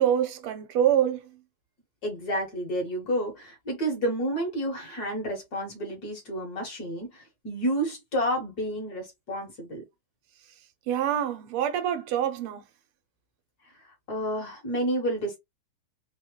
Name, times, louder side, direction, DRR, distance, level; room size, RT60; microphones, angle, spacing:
voice 1, 0.0-1.4 10.9-12.6, right 10 dB, 80° right, 1.7 m, -25 dB
voice 2, 2.0-9.8 14.1-15.4, equal, 50° left, 1.8 m, -30 dB
4.0 x 3.0 x 3.0 m
omnidirectional pair, 2.4 m